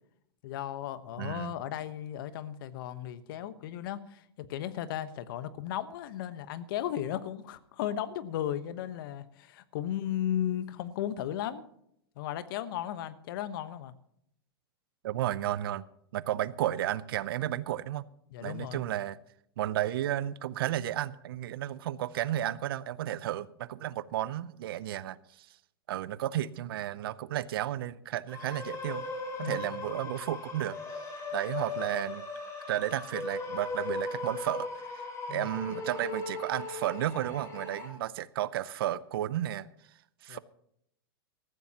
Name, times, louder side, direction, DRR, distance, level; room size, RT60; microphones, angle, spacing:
voice 1, 0.4-11.7 12.2-13.9 18.3-18.8 29.4-29.6 35.3-35.5 40.3-40.4, left 11 dB, 60° left, 1.1 m, -35 dB
voice 2, 1.2-1.5 15.0-15.8 16.1-18.0 18.4-19.2 19.6-25.5 25.9-29.1 29.4-30.8 31.3-32.2 32.7-34.7 34.9-39.7 40.2-40.4, right 13 dB, 70° right, 0.7 m, -33 dB
sound 1, 28.3-37.9, left 3 dB, 20° left, 4.8 m, -38 dB
19.0 x 14.5 x 2.9 m
hypercardioid pair, 115°, 13 cm